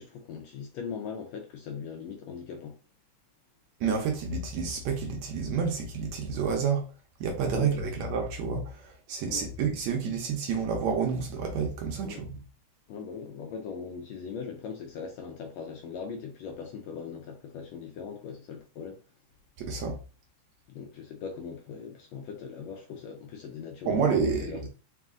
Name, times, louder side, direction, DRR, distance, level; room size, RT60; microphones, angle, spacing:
voice 1, 0.0-2.8 7.5-7.9 9.3-9.5 12.0-12.2 12.9-19.0 20.7-24.7, left 6 dB, 80° left, 1.6 m, -40 dB
voice 2, 3.8-6.8 7.2-12.4 19.6-20.0 23.9-24.4, right 6 dB, 70° right, 1.9 m, -29 dB
4.8 x 2.5 x 3.6 m
omnidirectional pair, 3.5 m